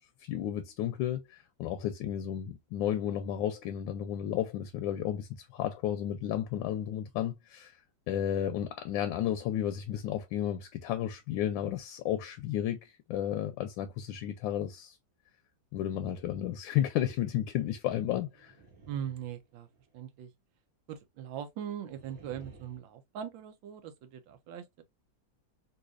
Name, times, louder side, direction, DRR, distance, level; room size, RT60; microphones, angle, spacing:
voice 1, 0.2-7.8 8.1-15.0 15.7-18.5, left 11 dB, 85° left, 1.3 m, -33 dB
sound 1, 18.2-20.0 21.8-22.8, right 2 dB, 55° right, 1.8 m, -55 dB
voice 2, 18.9-19.7 19.9-20.3 20.9-24.8, right 9 dB, 85° right, 1.3 m, -40 dB
4.0 x 2.7 x 2.4 m
omnidirectional pair, 2.1 m